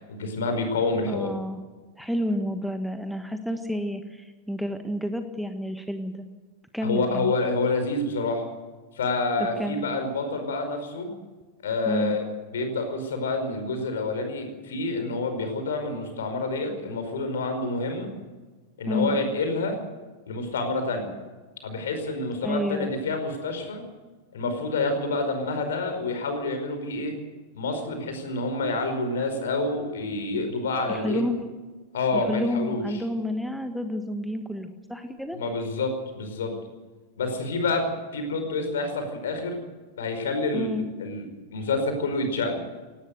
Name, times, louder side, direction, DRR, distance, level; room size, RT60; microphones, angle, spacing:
voice 1, 0.1-1.3 6.8-8.4 8.9-11.1 11.6-12.2 12.5-18.1 18.8-19.8 20.3-21.1 21.6-23.8 24.3-27.1 27.5-31.2 31.9-32.9 35.3-36.5 37.2-39.6 40.0-40.7 41.0-41.2 41.5-42.6, left 3 dB, 60° left, 6 dB, 5.1 m, -28 dB
voice 2, 1.1-1.6 2.0-6.2 6.7-7.3 9.6-9.8 11.9-12.2 18.9-19.2 22.4-22.9 30.9-31.5 32.1-35.4 40.5-40.9, left 1 dB, ahead, 7 dB, 1.6 m, -30 dB
18.5 x 17.5 x 8.1 m, 1.3 s
figure-of-eight pair, 90°, 0 cm